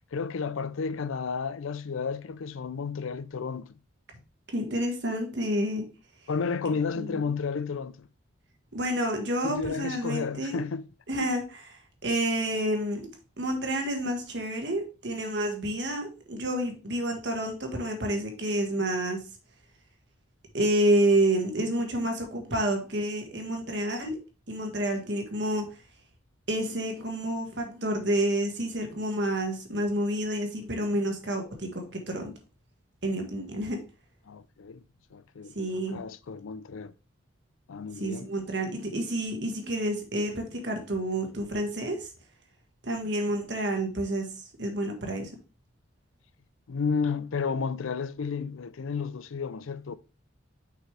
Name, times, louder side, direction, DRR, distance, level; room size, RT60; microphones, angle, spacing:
voice 1, 0.1-3.7 6.3-8.1 9.4-10.9 34.3-34.8 35.1-35.5 35.9-36.9 37.7-38.3 46.7-50.0, left 5 dB, 80° left, 0.5 m, -32 dB
voice 2, 4.5-5.9 7.0-7.3 8.7-10.6 11.1-13.1 13.4-19.2 20.5-24.2 24.5-25.7 26.5-32.3 33.0-33.8 35.5-36.0 38.0-42.1 42.8-45.3, right 1 dB, 55° right, 1.6 m, -29 dB
6.2 x 5.6 x 3.3 m
head